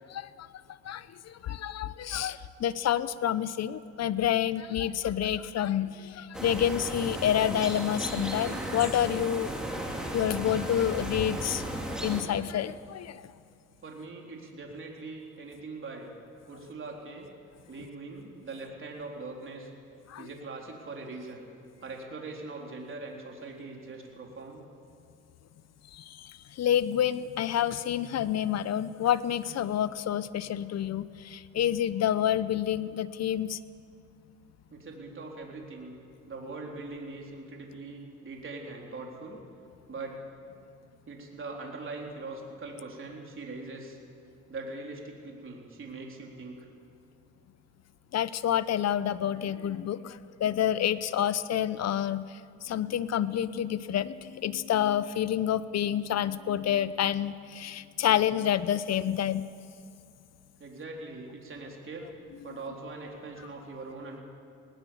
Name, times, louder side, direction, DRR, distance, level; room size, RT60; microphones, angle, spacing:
voice 1, 1.4-9.5 10.1-11.6 12.0-13.1 20.1-20.3 26.6-31.1 31.3-33.6 48.1-50.1 50.4-52.3 52.7-59.4, left 10 dB, 60° left, 16 dB, 0.8 m, -28 dB
sound 1, 6.3-12.2, right 1 dB, ahead, 3.8 m, -35 dB
voice 2, 13.8-16.1 16.5-17.3 17.7-19.7 20.2-21.5 21.8-24.6 34.7-35.9 36.3-39.4 39.9-40.2 41.1-44.0 44.5-46.7 60.6-62.1 62.4-64.2, right 3 dB, 40° right, 0 dB, 4.0 m, -41 dB
19.5 x 19.0 x 7.2 m, 2.4 s
cardioid pair, 90°, 30 cm